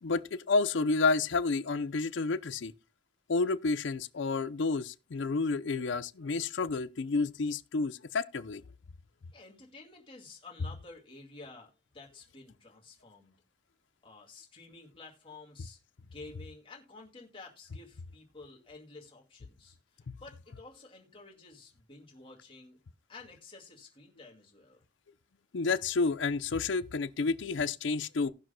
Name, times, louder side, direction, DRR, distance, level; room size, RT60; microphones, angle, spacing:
voice 1, 0.0-2.7 3.3-8.6 20.1-20.2 25.5-28.3, left 4 dB, 75° left, 0.5 m, -30 dB
voice 2, 9.3-13.4 14.0-15.8 16.1-22.8 23.1-24.8, left 3 dB, 25° left, 2.2 m, -51 dB
18.0 x 6.1 x 2.2 m
head